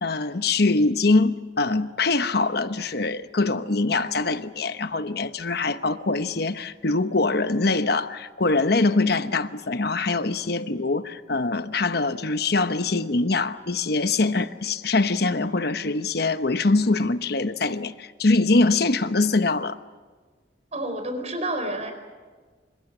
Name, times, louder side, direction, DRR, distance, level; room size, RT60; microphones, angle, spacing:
voice 1, 0.0-19.8, left 3 dB, 60° left, 1.1 m, -23 dB
voice 2, 20.7-21.9, right 1 dB, 40° right, 4.5 m, -29 dB
28.5 x 26.0 x 6.2 m
head